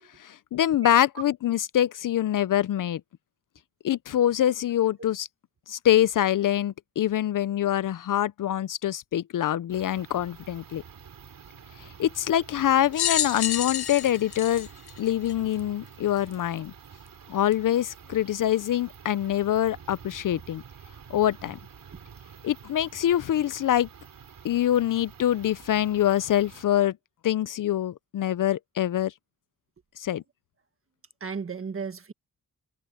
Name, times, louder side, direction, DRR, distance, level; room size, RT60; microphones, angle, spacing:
voice 1, 0.2-3.0 3.8-5.3 5.7-10.8 11.8-14.7 15.0-16.7 17.3-20.6 21.1-21.6 22.4-23.9 24.4-27.0 27.2-29.1 30.0-30.2, left 11 dB, 60° left, 0.4 m, -25 dB
sound 1, 9.7-26.7, right 7 dB, 60° right, 3.7 m, -48 dB
sound 2, 12.9-15.6 16.3-16.4 17.5-17.6, left 10 dB, 90° left, 0.9 m, -29 dB
voice 2, 31.2-32.1, right 5 dB, 35° right, 1.7 m, -35 dB
wide cardioid pair, 175°, 37 cm